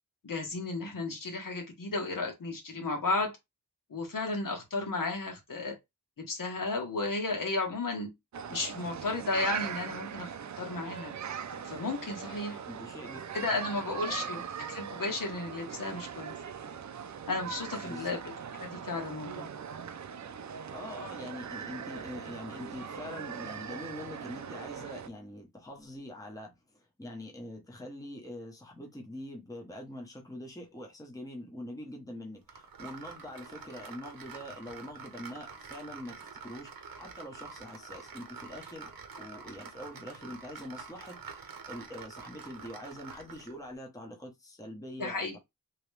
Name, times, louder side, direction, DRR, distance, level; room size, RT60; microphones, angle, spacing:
voice 1, 0.2-3.3 3.9-5.7 6.2-8.1 8.5-11.1 11.6-12.6 13.3-14.4 14.7-16.3 17.3-18.2 18.6-19.5 45.0-45.4, left 3 dB, 70° left, 1.3 m, -33 dB
sound 1, 8.3-25.1, right 7 dB, 55° right, 0.5 m, -40 dB
voice 2, 12.6-13.5 14.0-14.4 17.8-18.2 20.7-38.9 39.2-45.4, left 1 dB, 10° left, 0.9 m, -44 dB
sound 2, 32.5-43.6, right 5 dB, 85° right, 0.8 m, -47 dB
3.0 x 2.9 x 3.2 m
wide cardioid pair, 115°, 34 cm